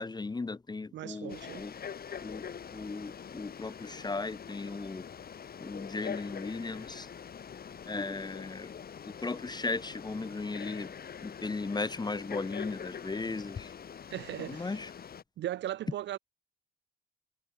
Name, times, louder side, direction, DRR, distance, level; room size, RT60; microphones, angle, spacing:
voice 1, 0.0-1.7 2.2-2.4 2.7-5.1 5.6-7.1 7.9-8.7 9.1-10.9 11.2-13.7 14.5-14.9, left 3 dB, 20° left, 1.2 m, -36 dB
voice 2, 0.9-1.6 14.1-14.8 15.4-16.2, right 13 dB, 65° right, 0.6 m, -37 dB
Frog, 1.3-15.2, left 7 dB, 50° left, 4.0 m, -44 dB
cardioid pair, 90°, 20 cm